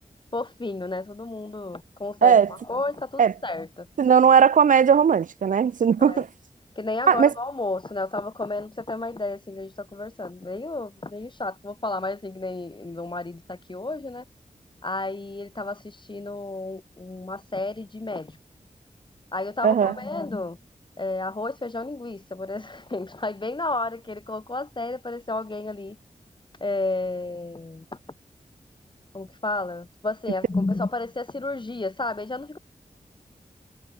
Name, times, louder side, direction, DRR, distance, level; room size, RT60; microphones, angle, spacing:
voice 1, 0.3-3.9 6.0-6.2 6.8-14.2 14.8-18.4 19.3-20.6 21.0-26.0 26.6-27.8 29.1-32.6, left 2 dB, 35° left, 2.1 m, -31 dB
voice 2, 4.0-6.3 7.1-7.3 19.6-19.9, right 7 dB, 70° right, 0.5 m, -17 dB
cardioid pair, 45°, 14 cm